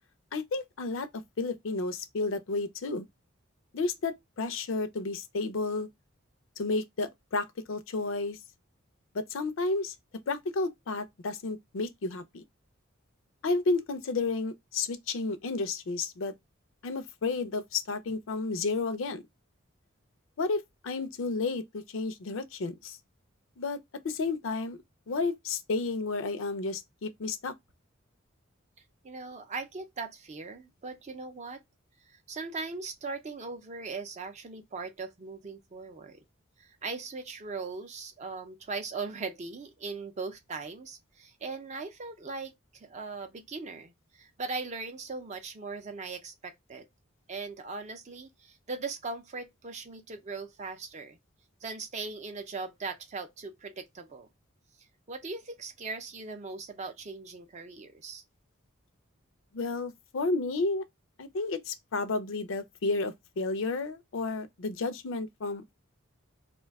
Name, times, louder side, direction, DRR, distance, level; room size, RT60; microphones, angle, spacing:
voice 1, 0.3-1.1 1.4-3.1 3.7-5.9 6.6-8.4 9.1-9.9 10.3-12.4 13.4-16.3 16.8-19.2 20.4-23.0 23.6-23.8 24.0-24.8 25.1-27.5 59.5-60.8 61.2-65.7, left 3 dB, 70° left, 0.5 m, -32 dB
voice 2, 29.0-31.6 32.1-36.2 36.6-46.9 47.3-51.2 51.6-54.3 55.1-58.2, right 4 dB, 35° right, 0.4 m, -39 dB
2.6 x 2.2 x 3.4 m
head